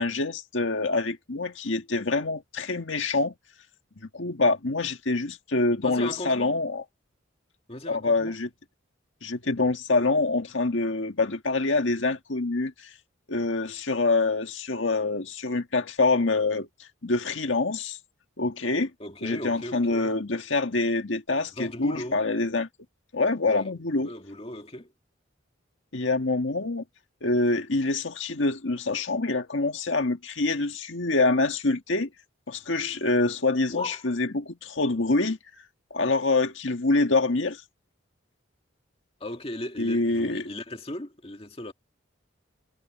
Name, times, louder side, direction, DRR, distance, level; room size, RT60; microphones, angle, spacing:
voice 1, 0.0-3.3 4.1-6.8 7.9-8.5 9.2-12.9 13.3-18.0 18.4-18.9 19.2-22.7 23.1-24.1 25.9-26.8 27.2-32.1 32.5-35.4 35.9-37.6 39.8-40.4, left 3 dB, 70° left, 1.7 m, -26 dB
voice 2, 5.8-6.5 7.7-8.4 19.0-20.1 21.5-22.2 23.4-24.9 33.7-34.1 39.2-41.7, left 1 dB, 30° left, 2.0 m, -37 dB
head